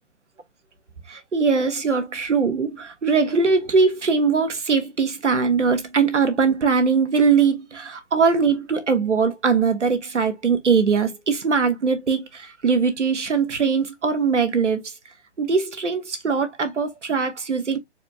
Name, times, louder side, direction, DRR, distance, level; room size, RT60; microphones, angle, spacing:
voice 1, 1.1-14.9 15.4-17.8, right 5 dB, 85° right, 1.2 m, -21 dB
4.3 x 2.1 x 4.0 m
figure-of-eight pair, 140°, 35 cm